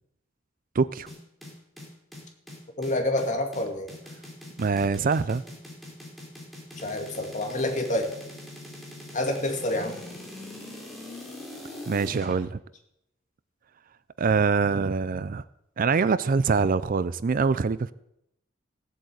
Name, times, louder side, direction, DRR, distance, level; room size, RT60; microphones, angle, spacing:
voice 1, 0.7-1.1 4.6-5.4 11.9-12.6 14.2-15.4 15.8-17.9, right 5 dB, 45° right, 16 dB, 0.4 m, -24 dB
sound 1, 1.1-12.3, left 1 dB, ahead, 3.8 m, -42 dB
voice 2, 2.8-3.9 6.8-8.1 9.1-9.9, left 1 dB, 40° left, 3 dB, 2.5 m, -27 dB
16.0 x 8.1 x 8.0 m, 0.81 s
head